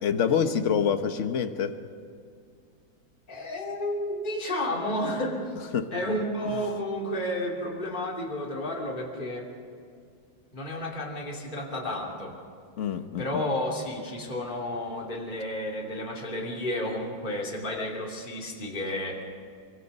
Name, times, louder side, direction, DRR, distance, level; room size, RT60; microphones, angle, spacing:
voice 1, 0.0-1.8 5.7-5.9 12.8-13.4, left 7 dB, 45° left, 8 dB, 1.2 m, -26 dB
voice 2, 3.3-5.6 5.9-9.5 10.5-12.4 13.2-19.2, left 1 dB, 25° left, -2 dB, 2.9 m, -31 dB
24.5 x 24.0 x 5.4 m, 2.3 s
omnidirectional pair, 2.2 m